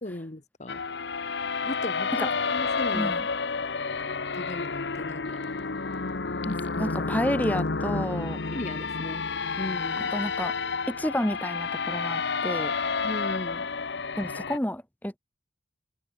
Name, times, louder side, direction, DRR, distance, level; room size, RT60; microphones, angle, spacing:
voice 1, 0.0-0.8 1.6-3.1 4.3-5.5 8.5-9.2 9.6-10.1 13.0-13.7, left 1 dB, 40° left, 1.2 m, -37 dB
sound 1, 0.7-14.6, left 4 dB, 75° left, 1.0 m, -30 dB
voice 2, 2.9-3.3 6.4-8.4 10.1-10.6 10.9-12.7 14.2-15.2, equal, 10° left, 1.8 m, -30 dB
open air
head